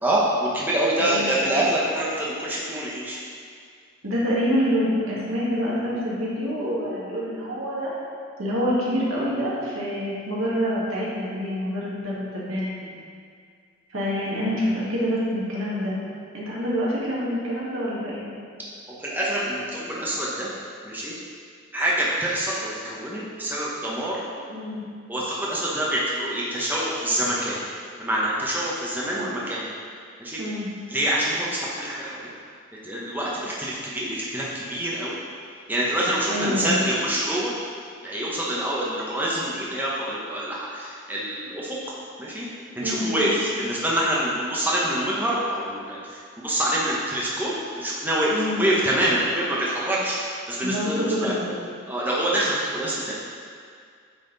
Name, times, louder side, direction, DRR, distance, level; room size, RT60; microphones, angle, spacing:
voice 1, 0.0-3.2 19.0-20.5 20.8-21.1 21.7-24.2 25.1-27.6 28.0-29.6 30.2-30.4 30.9-32.3 32.8-35.2 35.7-37.5 38.0-41.8 42.2-42.5 42.7-51.3 51.9-53.1, right 1 dB, 10° right, -6 dB, 0.8 m, -26 dB
voice 2, 1.0-1.3 4.0-7.9 8.4-12.8 13.9-16.0 16.3-18.2 24.5-24.8 29.2-29.3 30.4-30.7 36.3-36.9 42.8-43.3 48.3-48.6 50.6-51.6, equal, 90° right, -7 dB, 1.8 m, -26 dB
8.8 x 4.2 x 3.9 m, 2.2 s
head